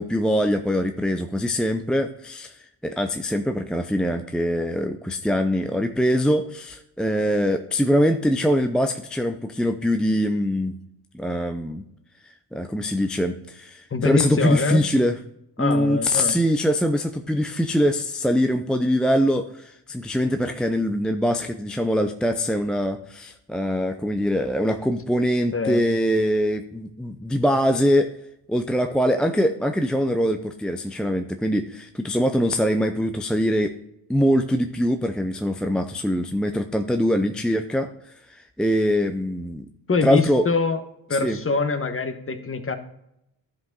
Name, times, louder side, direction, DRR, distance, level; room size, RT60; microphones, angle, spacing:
voice 1, 0.0-10.7 11.1-11.8 12.5-15.2 15.6-28.1 28.5-33.7 34.1-39.7 40.0-40.5 41.1-41.4, equal, ahead, 6 dB, 0.5 m, -23 dB
voice 2, 13.9-14.8 15.6-16.3 25.5-25.8 39.9-40.8 41.1-42.8, left 4 dB, 25° left, 8 dB, 1.2 m, -24 dB
11.5 x 5.2 x 4.0 m, 0.81 s
supercardioid pair, 70°, 47 cm